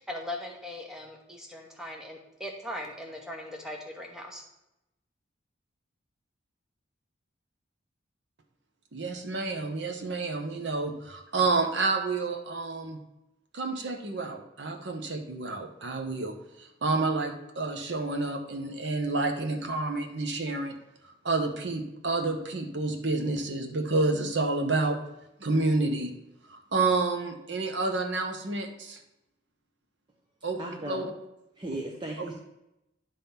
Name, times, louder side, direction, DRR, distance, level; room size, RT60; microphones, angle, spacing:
voice 1, 0.0-4.4, left 1 dB, 5° right, 0 dB, 1.1 m, -39 dB
voice 2, 8.9-13.0 13.5-20.8 21.2-25.0 25.4-26.1 26.5-29.0 30.4-30.6 30.9-31.0 32.2-32.3, right 3 dB, 60° right, 5 dB, 0.9 m, -29 dB
voice 3, 30.6-31.1 31.6-32.3, right 1 dB, 25° right, -1 dB, 0.7 m, -36 dB
10.0 x 3.6 x 5.8 m, 0.89 s
head